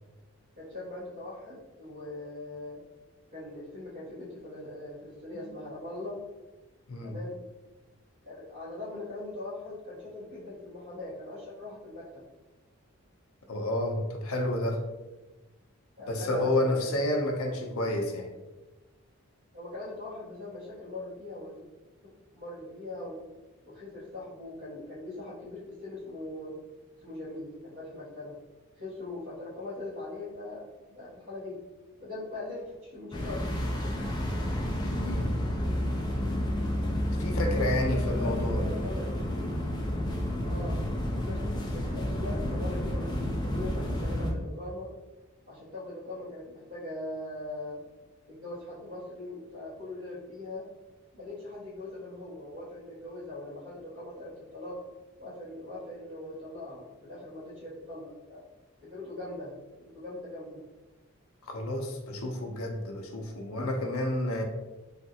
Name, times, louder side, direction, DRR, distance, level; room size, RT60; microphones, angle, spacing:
voice 1, 0.6-2.8 3.3-6.2 7.0-7.4 8.2-12.2 16.0-16.9 19.5-21.6 22.3-23.2 23.6-26.5 26.9-28.3 28.8-31.6 32.0-33.6 37.8-39.3 40.4-40.8 41.2-44.9 45.5-47.8 48.3-50.6 51.1-54.8 55.2-58.4 58.8-59.5 59.8-60.6, left 2 dB, 70° right, -13 dB, 1.4 m, -41 dB
voice 2, 13.5-14.8 16.1-18.3 35.0-35.3 37.2-38.6 61.4-64.4, left 1 dB, 75° left, 2 dB, 0.5 m, -30 dB
sound 1, 33.1-44.3, left 1 dB, 20° left, 0.3 m, -30 dB
3.3 x 2.3 x 2.7 m, 1.1 s
head